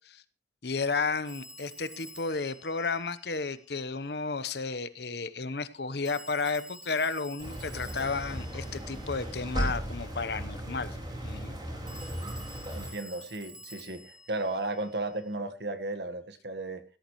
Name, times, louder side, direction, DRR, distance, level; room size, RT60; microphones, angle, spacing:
voice 1, 0.6-11.0 11.2-11.6, left 4 dB, 65° left, 14 dB, 1.0 m, -32 dB
Telephone, 1.2-3.9 6.0-9.7 11.9-15.3, equal, 5° right, 1.7 m, -50 dB
sound 1, 7.4-12.9, equal, 25° right, 4.9 m, -36 dB
voice 2, 12.7-16.8, right 2 dB, 70° right, 9 dB, 1.5 m, -35 dB
17.0 x 13.5 x 3.2 m, 0.34 s
head